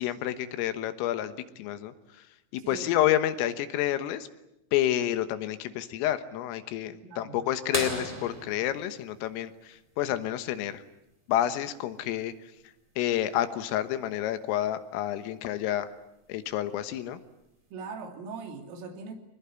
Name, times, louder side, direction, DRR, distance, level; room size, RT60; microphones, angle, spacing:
voice 1, 0.0-1.9 2.5-4.3 4.7-10.8 11.3-12.3 13.0-15.9 16.3-17.2, left 12 dB, 85° left, 11 dB, 3.9 m, -29 dB
voice 2, 2.6-2.9 7.0-7.4 17.7-19.1, right 4 dB, 75° right, 5 dB, 5.4 m, -40 dB
sound 1, 7.7-10.2 12.1-12.2 14.4-14.5 16.2-16.5 17.3-17.4, right 1 dB, 10° right, 2.9 m, -35 dB
25.5 x 20.5 x 9.9 m, 0.87 s
omnidirectional pair, 5.9 m